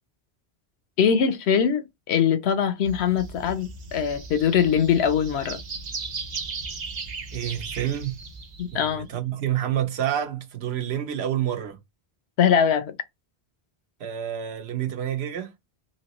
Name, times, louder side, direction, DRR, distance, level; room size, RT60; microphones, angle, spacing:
voice 1, 1.0-5.6 8.6-9.1 12.4-13.0, left 7 dB, 85° left, 0.9 m, -22 dB
sound 1, 2.8-9.0, right 4 dB, 50° right, 0.7 m, -37 dB
voice 2, 7.3-8.2 8.7-11.8 14.0-15.5, right 10 dB, 80° right, 0.9 m, -28 dB
3.1 x 2.8 x 2.9 m
omnidirectional pair, 1.1 m